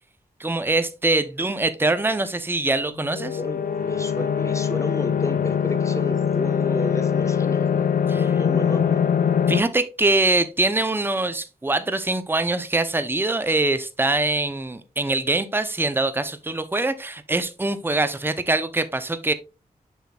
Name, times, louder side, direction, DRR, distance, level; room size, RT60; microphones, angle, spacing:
voice 1, 0.4-3.4 8.1-8.3 9.5-19.3, right 2 dB, 15° right, 0.7 m, -23 dB
sound 1, 2.9-9.6, left 7 dB, 65° left, 0.6 m, -22 dB
voice 2, 3.3-9.0, left 1 dB, 20° left, 1.2 m, -32 dB
7.0 x 5.8 x 2.4 m
cardioid pair, 50°, 16 cm